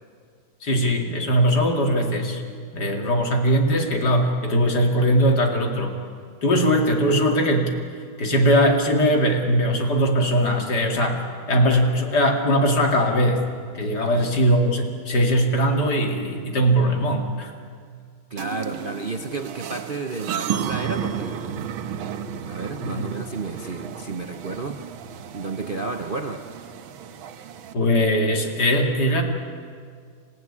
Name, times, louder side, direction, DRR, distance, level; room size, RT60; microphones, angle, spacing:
voice 1, 0.6-2.4 2.7-6.0 6.4-7.7 8.2-11.2 11.5-13.5 13.7-17.5 22.8-23.1 27.7-29.2, equal, 55° left, 3 dB, 2.8 m, -20 dB
voice 2, 14.0-14.3 18.3-21.7 22.5-24.8 25.3-26.5, right 3 dB, 50° right, 5 dB, 0.6 m, -32 dB
sound 1, 18.4-27.7, right 8 dB, 85° right, 1.7 m, -33 dB
27.5 x 15.5 x 9.7 m, 2.1 s
omnidirectional pair, 2.2 m